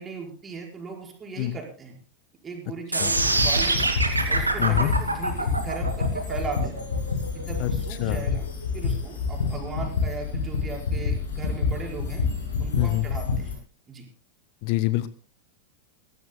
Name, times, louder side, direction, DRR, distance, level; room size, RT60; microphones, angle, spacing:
voice 1, 0.0-2.0 2.4-3.9 4.3-6.8 7.3-8.5 8.7-12.2 12.6-13.6 13.9-14.1, right 4 dB, 20° right, 0 dB, 5.2 m, -37 dB
sound 1, 2.9-9.0, right 2 dB, 80° right, 2.6 m, -25 dB
sound 2, 3.0-13.6, left 5 dB, 65° left, 7.5 m, -28 dB
voice 2, 4.6-4.9 7.6-7.7 8.0-8.3 12.7-13.0 14.6-15.1, left 17 dB, 45° left, 16 dB, 0.8 m, -25 dB
22.0 x 16.5 x 2.3 m, 0.38 s
figure-of-eight pair, 90°, 0 cm